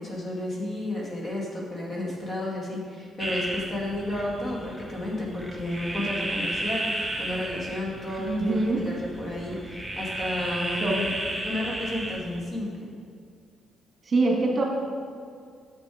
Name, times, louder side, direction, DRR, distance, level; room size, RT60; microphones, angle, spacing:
voice 1, 0.0-11.1 11.4-12.9, left 1 dB, 40° left, -3 dB, 2.1 m, -32 dB
sound 1, 3.2-12.4, right 1 dB, 5° right, 0.8 m, -33 dB
voice 2, 8.2-8.8 10.8-10.9 14.0-14.6, right 3 dB, 40° right, -1 dB, 1.7 m, -24 dB
6.9 x 6.4 x 5.0 m, 2.2 s
cardioid pair, 90°, 0 cm